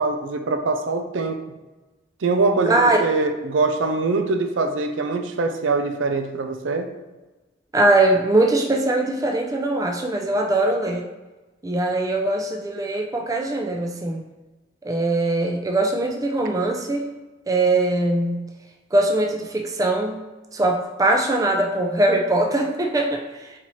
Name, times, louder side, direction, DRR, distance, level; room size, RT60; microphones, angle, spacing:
voice 1, 0.0-1.4 2.2-6.9, right 3 dB, 90° right, 6 dB, 0.5 m, -23 dB
voice 2, 2.6-3.0 7.7-11.0 11.6-14.2 14.8-17.0 17.5-18.4 18.9-20.2 20.5-23.2, right 2 dB, 20° right, 2 dB, 0.4 m, -21 dB
4.2 x 4.0 x 3.0 m, 1.1 s
head